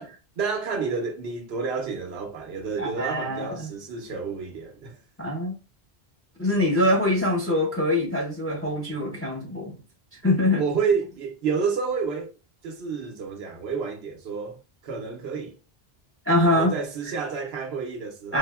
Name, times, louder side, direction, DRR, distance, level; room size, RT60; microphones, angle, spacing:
voice 1, 0.0-5.0 10.6-12.3 12.6-15.6 16.4-18.4, right 5 dB, 80° right, 0.9 m, -30 dB
voice 2, 2.8-3.7 5.2-5.5 6.4-9.8 10.2-10.6 16.3-16.7 18.3-18.4, left 1 dB, 20° left, 0.4 m, -23 dB
3.4 x 2.0 x 2.2 m
omnidirectional pair, 1.0 m